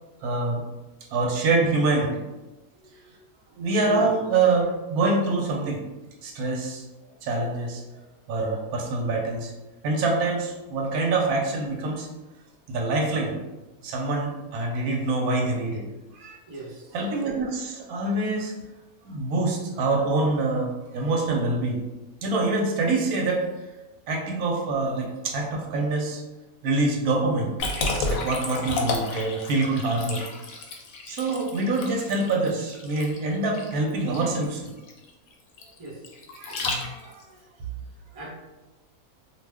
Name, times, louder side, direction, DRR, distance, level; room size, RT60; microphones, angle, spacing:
voice 1, 0.2-0.6 1.1-2.2 3.0-3.1 3.6-5.8 6.2-6.8 7.2-7.8 8.3-9.5 9.8-12.1 12.7-13.4 13.8-15.9 16.1-16.4 16.9-18.5 19.0-21.8 22.2-23.5 24.1-26.2 26.6-27.5 28.0-30.2 31.1-34.6 36.4-37.2, right 3 dB, 85° right, 1 dB, 1.1 m, -25 dB
voice 2, 16.5-16.9 35.8-36.0 38.1-38.3, right 2 dB, 30° right, -5 dB, 0.7 m, -37 dB
Liquid, 27.6-37.2, left 3 dB, 70° left, 0.9 m, -32 dB
2.4 x 2.3 x 3.3 m, 1.1 s
omnidirectional pair, 1.5 m